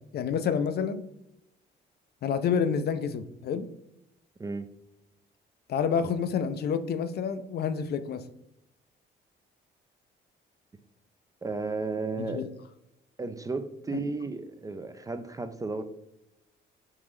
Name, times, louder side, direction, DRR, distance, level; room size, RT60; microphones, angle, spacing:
voice 1, 0.1-1.1 2.2-3.7 5.7-8.2 12.2-12.5 13.9-14.0, left 6 dB, 55° left, 11 dB, 0.4 m, -28 dB
voice 2, 11.4-12.5 13.2-15.8, right 3 dB, 15° right, 9 dB, 0.3 m, -33 dB
3.7 x 3.7 x 3.1 m, 0.85 s
cardioid pair, 90°, 20 cm